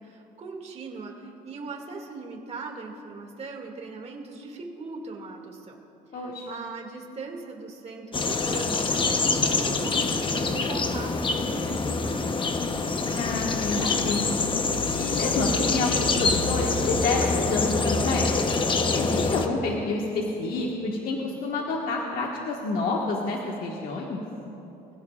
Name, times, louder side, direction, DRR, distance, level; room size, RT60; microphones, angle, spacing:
voice 1, 0.0-5.8 6.1-12.3 19.3-20.0, right 3 dB, 40° right, 1 dB, 2.4 m, -39 dB
voice 2, 6.1-6.6 13.1-14.4 14.9-18.4 18.9-24.2, left 3 dB, 60° left, -2 dB, 1.6 m, -28 dB
sound 1, 8.1-19.5, left 4 dB, 30° left, 1.0 m, -25 dB
25.0 x 16.0 x 2.5 m, 3.0 s
cardioid pair, 110°, 17 cm